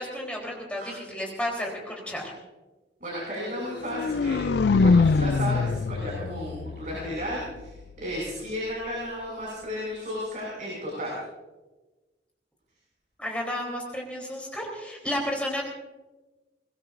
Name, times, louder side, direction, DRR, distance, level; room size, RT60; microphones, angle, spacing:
voice 1, 0.0-2.3 13.2-15.6, left 1 dB, 5° left, -1 dB, 3.6 m, -32 dB
voice 2, 3.0-11.2, equal, 50° right, -4 dB, 6.2 m, -34 dB
sound 1, 3.7-7.7, left 4 dB, 65° left, 0.4 m, -24 dB
22.0 x 20.5 x 2.6 m, 1.1 s
head